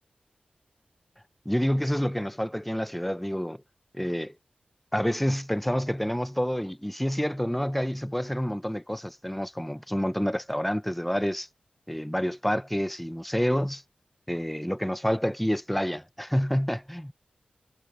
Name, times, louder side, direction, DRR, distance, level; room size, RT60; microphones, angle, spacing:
voice 1, 1.4-3.6 3.9-4.4 4.9-11.5 11.9-13.8 14.3-17.1, equal, 5° left, 0.9 m, -28 dB
wide cardioid pair, 85°, 3 cm